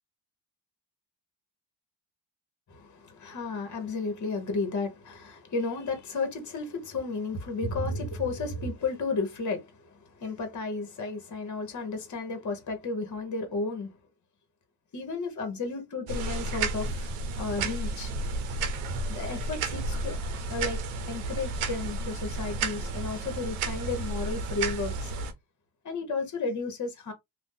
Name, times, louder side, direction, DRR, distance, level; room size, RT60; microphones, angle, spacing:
voice 1, 2.7-13.9 14.9-18.1 19.1-20.2 20.5-20.8 21.0-25.1 25.8-27.1, left 3 dB, 35° left, 1.2 m, -33 dB
sound 1, 16.1-25.3, right 3 dB, 85° right, 0.7 m, -32 dB
2.6 x 2.4 x 3.7 m
cardioid pair, 95°, 48 cm